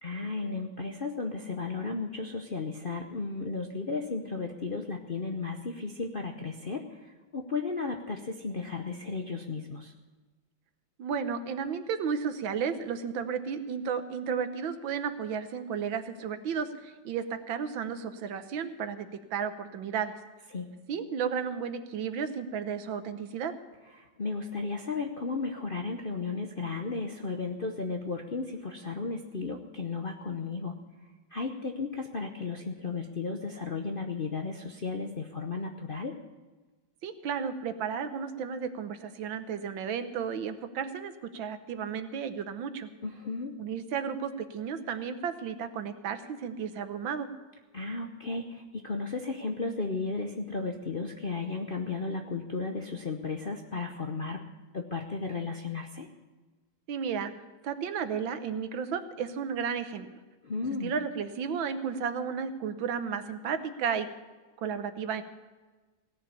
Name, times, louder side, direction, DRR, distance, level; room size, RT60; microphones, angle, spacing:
voice 1, 0.0-9.9 20.5-20.7 24.0-30.8 31.3-36.2 43.0-43.5 47.7-54.4 54.7-56.1 60.4-60.9, left 4 dB, 50° left, 3 dB, 0.6 m, -34 dB
voice 2, 11.0-20.1 20.9-23.5 37.0-42.9 43.6-47.3 56.9-57.3 57.6-60.1 60.8-64.1 64.6-65.2, right 7 dB, 80° right, 10 dB, 1.7 m, -33 dB
17.0 x 7.0 x 9.7 m, 1.3 s
omnidirectional pair, 2.1 m